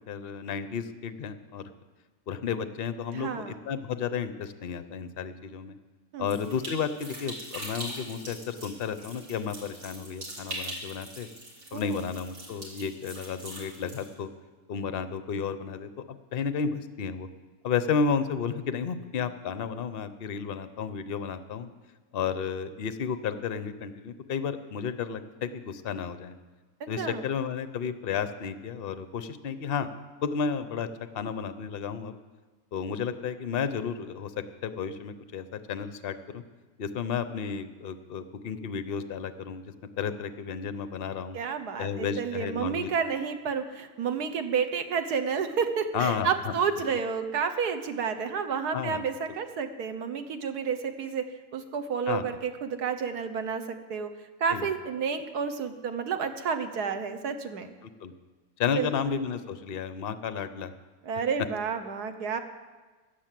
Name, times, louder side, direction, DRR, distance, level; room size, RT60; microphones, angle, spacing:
voice 1, 0.1-1.7 2.3-5.8 6.2-11.3 11.7-14.3 14.7-17.3 17.6-21.7 22.1-26.3 26.9-29.9 30.2-30.9 31.1-32.1 32.7-36.4 36.8-41.4 41.8-42.9 45.9-46.5 48.7-49.0 52.1-52.2 54.5-54.7 57.8-58.1 58.6-60.7, left 6 dB, 55° left, 11 dB, 0.6 m, -32 dB
voice 2, 3.1-3.6 6.1-6.5 11.7-12.1 26.8-27.2 41.3-51.2 51.5-54.1 54.4-57.7 58.7-58.9 61.0-62.4, right 6 dB, 60° right, 8 dB, 1.5 m, -30 dB
sound 1, 6.3-14.1, right 1 dB, 85° right, 3.9 m, -42 dB
15.5 x 10.5 x 7.6 m, 1.3 s
omnidirectional pair, 1.9 m